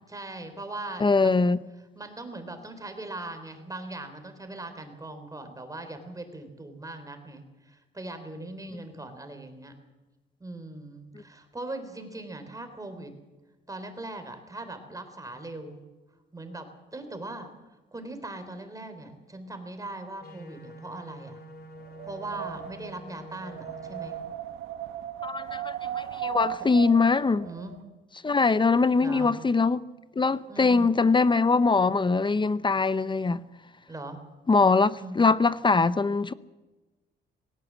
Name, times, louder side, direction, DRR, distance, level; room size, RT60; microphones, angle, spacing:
voice 1, 0.1-1.6 2.0-9.7 10.4-13.1 13.7-15.8 16.3-16.7 16.9-17.5 17.9-21.4 22.0-24.2 27.4-27.8 29.0-29.3 30.5-30.9 33.9-34.2 34.7-35.2, right 2 dB, 15° right, 3.9 m, -40 dB
voice 2, 1.0-1.6 25.2-27.4 28.2-29.8 30.2-33.4 34.5-36.3, left 4 dB, 25° left, 0.7 m, -22 dB
sound 1, 20.2-24.2, equal, 50° left, 3.8 m, -46 dB
Wind, 21.8-27.8, right 11 dB, 80° right, 1.4 m, -37 dB
19.0 x 18.0 x 7.6 m
cardioid pair, 90°, 20 cm